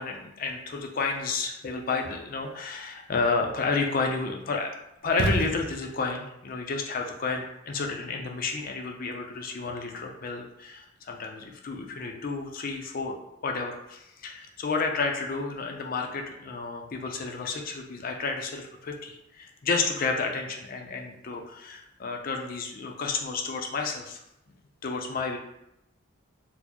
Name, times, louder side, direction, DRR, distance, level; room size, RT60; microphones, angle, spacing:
voice 1, 0.0-4.7 5.0-24.2 24.8-25.4, left 4 dB, 45° left, 3 dB, 0.4 m, -31 dB
sound 1, 5.1-6.1, right 1 dB, 70° right, 0.5 m, -29 dB
4.2 x 2.0 x 2.9 m, 0.83 s
head